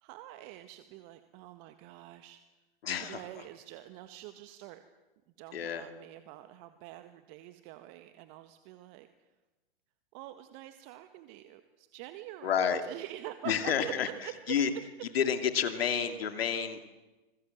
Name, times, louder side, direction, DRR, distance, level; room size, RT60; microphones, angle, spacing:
voice 1, 0.0-2.6 3.0-4.8 5.4-9.3 10.1-14.5 16.2-16.3, right 14 dB, 45° right, 9 dB, 1.6 m, -46 dB
voice 2, 2.8-3.2 5.5-5.8 12.4-12.8 13.4-14.1 14.5-14.7 15.1-16.8, left 7 dB, 75° left, 8 dB, 2.7 m, -29 dB
26.5 x 21.5 x 7.9 m, 1.1 s
hypercardioid pair, 115°, 30 cm